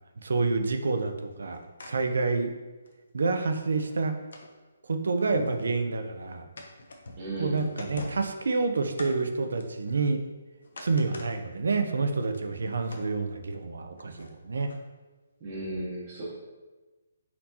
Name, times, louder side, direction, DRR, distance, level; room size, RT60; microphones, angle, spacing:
voice 1, 0.2-2.5 3.1-4.2 4.9-6.4 7.4-10.2 10.8-14.7, right 3 dB, 70° right, 7 dB, 0.5 m, -28 dB
sound 1, 1.3-1.9 2.3-2.4 2.8-2.9 3.5-4.5 4.9-5.0 5.2-5.7 6.6-7.3 7.6-8.4 8.9-9.1 9.5-10.3 10.6-11.3 11.7-11.8 12.2-13.0 14.0-14.3 14.7-14.8, left 2 dB, 65° left, 0.7 m, -42 dB
voice 2, 7.2-7.7 15.4-16.2, right 1 dB, 20° right, -9 dB, 0.8 m, -35 dB
4.3 x 4.1 x 2.8 m, 1.2 s
hypercardioid pair, 180°, 0 cm